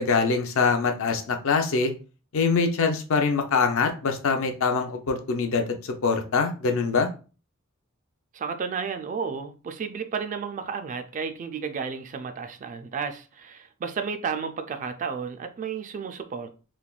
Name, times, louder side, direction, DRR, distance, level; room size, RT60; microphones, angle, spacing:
voice 1, 0.0-1.9 2.3-7.1, left 4 dB, 65° left, 0.5 m, -24 dB
voice 2, 8.3-16.5, right 6 dB, 35° right, 0.3 m, -32 dB
3.2 x 2.2 x 2.3 m
head